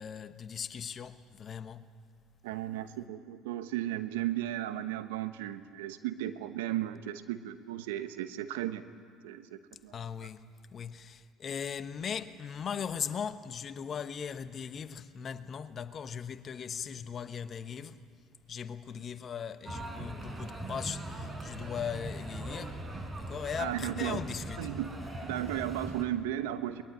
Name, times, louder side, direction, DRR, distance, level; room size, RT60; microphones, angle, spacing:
voice 1, 0.0-1.9 9.9-10.4 10.7-18.0 18.5-22.8 23.2-24.7, left 7 dB, 45° left, 1.2 m, -39 dB
voice 2, 2.4-8.8 9.2-9.9 23.6-24.2 24.6-24.9 25.2-26.8, right 13 dB, 85° right, 1.1 m, -35 dB
sound 1, 19.7-26.1, right 1 dB, 25° right, 4.3 m, -40 dB
22.5 x 20.5 x 9.6 m
hypercardioid pair, 75°, 0 cm